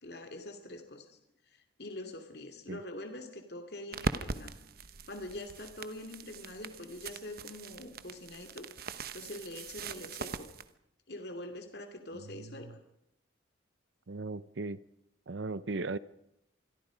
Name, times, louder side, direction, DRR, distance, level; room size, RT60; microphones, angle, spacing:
voice 1, 0.0-1.2 1.5-4.6 5.1-10.5 11.1-12.8, left 1 dB, 55° left, 6 dB, 2.7 m, -44 dB
sound 1, 3.9-10.6, right 3 dB, 50° right, 1.1 m, -41 dB
voice 2, 12.1-12.7 14.1-14.8 15.3-16.0, right 3 dB, 75° right, 17 dB, 0.7 m, -38 dB
26.5 x 22.0 x 5.1 m, 0.80 s
head